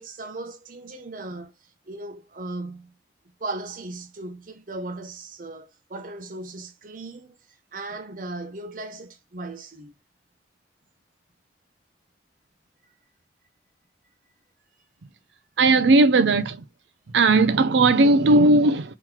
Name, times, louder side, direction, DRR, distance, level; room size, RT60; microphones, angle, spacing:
voice 1, 0.0-1.5 1.9-2.9 3.4-7.3 7.7-9.9, right 2 dB, 50° right, 0.8 m, -37 dB
voice 2, 15.6-16.6 17.1-18.9, right 2 dB, 85° right, 0.5 m, -17 dB
3.8 x 3.0 x 4.4 m
head